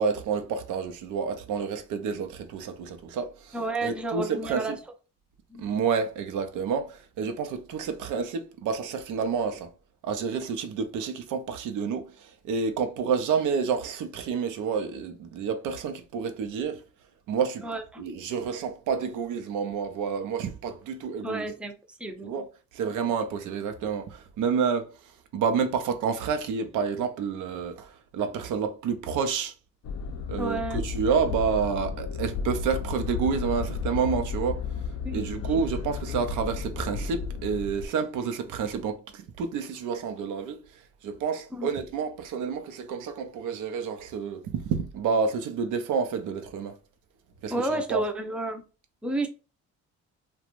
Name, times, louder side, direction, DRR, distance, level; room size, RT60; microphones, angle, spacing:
voice 1, 0.0-4.8 5.6-9.7 10.0-16.8 17.3-17.7 18.0-21.5 22.2-22.5 22.7-29.5 30.3-34.6 35.1-46.8 47.4-48.0, right 6 dB, 80° right, 0.5 m, -29 dB
voice 2, 3.5-4.7 5.5-5.7 17.6-18.0 21.2-21.7 22.0-22.3 30.4-30.8 35.0-35.4 41.5-41.7 47.5-48.6 49.0-49.3, right 2 dB, 5° right, 0.4 m, -31 dB
sound 1, 29.8-37.9, left 5 dB, 60° left, 0.4 m, -33 dB
2.5 x 2.2 x 2.9 m
cardioid pair, 90°, 30 cm